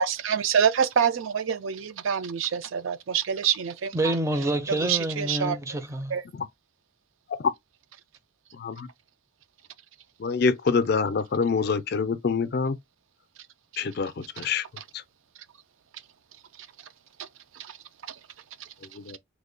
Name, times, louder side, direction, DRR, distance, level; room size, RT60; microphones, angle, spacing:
voice 1, 0.0-4.1 4.8-5.6 6.1-6.2 17.2-17.3 17.5-17.8 18.1-18.2 18.6-18.7, right 7 dB, 75° right, 0.5 m, -26 dB
voice 2, 3.9-6.1, right 1 dB, 15° right, 0.4 m, -27 dB
voice 3, 8.5-8.9 10.2-12.8 13.8-14.6 14.9-15.0 18.9-19.2, left 5 dB, 50° left, 0.4 m, -26 dB
3.1 x 2.2 x 3.7 m
head